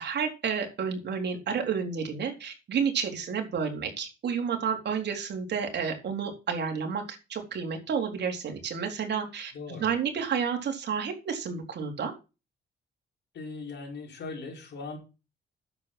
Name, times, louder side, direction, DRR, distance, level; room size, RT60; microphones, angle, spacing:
voice 1, 0.0-12.1, right 6 dB, 60° right, 3 dB, 4.1 m, -31 dB
voice 2, 9.5-9.9 13.3-15.0, left 4 dB, 60° left, 1 dB, 6.2 m, -39 dB
10.5 x 8.0 x 6.1 m, 0.30 s
cardioid pair, 90°, 20 cm